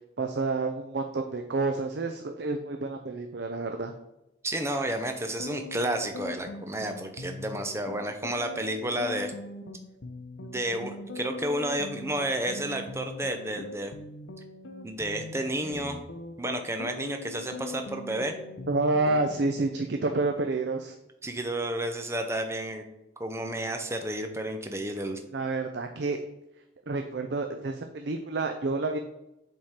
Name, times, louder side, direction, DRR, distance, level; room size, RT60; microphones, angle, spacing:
voice 1, 0.2-3.9 18.7-20.9 25.3-26.2 26.9-29.0, right 3 dB, 65° right, 5 dB, 0.5 m, -29 dB
voice 2, 4.4-9.3 10.4-13.9 14.8-16.0 16.4-18.3 19.1-19.2 21.2-22.8 23.2-25.2, right 1 dB, 15° right, 5 dB, 0.6 m, -31 dB
sound 1, 5.4-19.3, left 2 dB, 90° left, 0.7 m, -41 dB
7.6 x 3.7 x 4.3 m, 0.91 s
head